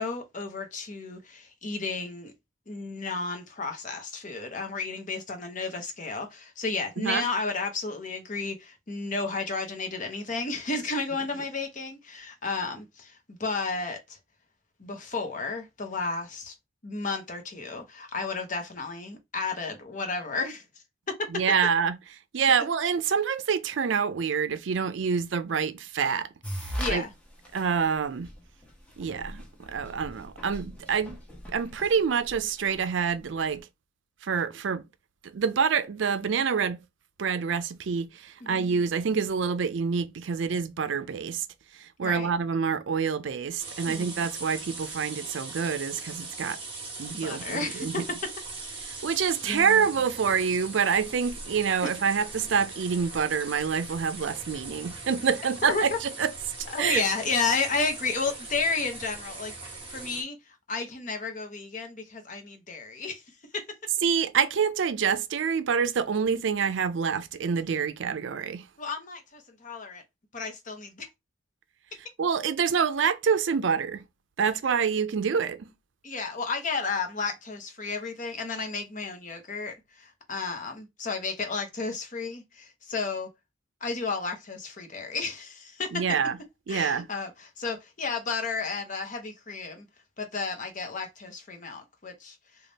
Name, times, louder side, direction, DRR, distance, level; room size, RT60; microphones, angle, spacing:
voice 1, 0.0-2.3 2.7-14.2 14.8-16.5 16.8-20.6 21.1-21.3 26.8-27.1 38.4-38.6 42.0-42.3 43.9-44.1 47.2-48.0 49.4-49.8 51.8-51.9 55.6-55.8 56.7-60.4 60.7-63.2 63.5-63.6 67.3-67.5 68.8-70.0 70.3-71.1 76.0-83.3 83.8-86.0 86.7-89.9 90.2-92.4, left 4 dB, 45° left, 0.9 m, -32 dB
voice 2, 7.0-7.3 21.3-21.9 22.3-26.3 26.9-27.0 27.5-28.3 29.0-31.2 31.5-33.7 34.2-34.8 35.2-36.8 37.2-41.4 41.7-46.6 47.0-47.9 49.0-56.3 56.8-57.0 64.0-68.7 72.2-74.0 74.4-75.7 85.9-86.4 86.7-87.1, right 6 dB, 75° right, 0.4 m, -27 dB
sound 1, 26.4-26.9 27.5-27.6 28.2-28.3 28.6-28.7 29.0-32.7, equal, 5° left, 1.1 m, -37 dB
sound 2, 43.6-60.2, right 3 dB, 30° right, 1.4 m, -40 dB
3.4 x 2.4 x 4.0 m
head